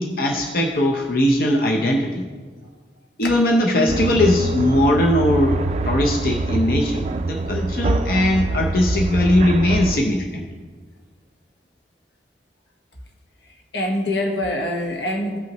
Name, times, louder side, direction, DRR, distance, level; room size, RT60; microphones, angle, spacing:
voice 1, 0.0-2.2 3.2-10.4, left 1 dB, 55° left, 1 dB, 0.7 m, -20 dB
sound 1, 3.9-10.0, right 2 dB, 35° right, 0.3 m, -24 dB
voice 2, 13.7-15.4, left 1 dB, 90° left, 2 dB, 1.3 m, -24 dB
16.0 x 5.6 x 3.0 m, 1.5 s
head